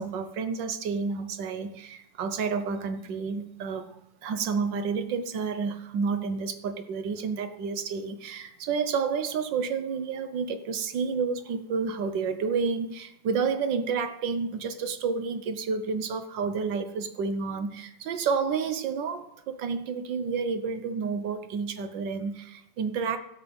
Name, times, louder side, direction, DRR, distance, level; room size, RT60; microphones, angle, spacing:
voice 1, 0.0-3.9 4.2-23.2, right 5 dB, 70° right, 9 dB, 1.6 m, -30 dB
16.5 x 5.8 x 5.4 m, 0.81 s
omnidirectional pair, 2.1 m